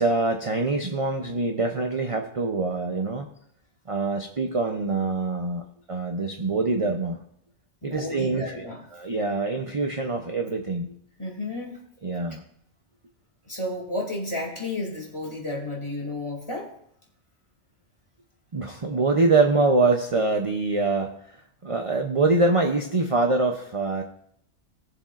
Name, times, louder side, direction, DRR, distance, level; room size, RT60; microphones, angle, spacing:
voice 1, 0.0-3.3 3.9-7.2 7.8-10.9 12.0-12.4 18.5-24.0, right 3 dB, 35° right, 3 dB, 0.7 m, -24 dB
voice 2, 7.8-8.8 11.2-11.8 13.5-16.7 18.9-19.0, left 1 dB, 25° left, -2 dB, 2.6 m, -32 dB
19.0 x 7.1 x 2.5 m, 0.70 s
omnidirectional pair, 1.2 m